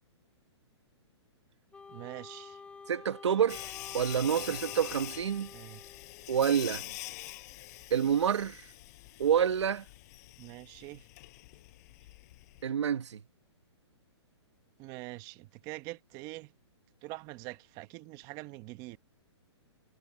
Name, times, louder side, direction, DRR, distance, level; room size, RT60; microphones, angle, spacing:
Wind instrument woodwind instrument, 1.7-6.3, left 4 dB, 5° left, 4.9 m, -50 dB
voice 1, 1.9-2.6 5.5-5.9 10.4-11.1 14.8-16.5 17.0-19.0, right 20 dB, 25° right, 1.0 m, -44 dB
voice 2, 2.9-5.5 6.3-6.8 7.9-8.6 9.2-9.8 12.6-13.2, right 8 dB, 85° right, 1.4 m, -28 dB
Sawing, 3.5-12.6, left 20 dB, 35° left, 5.1 m, -45 dB
hypercardioid pair, 160°, 15 cm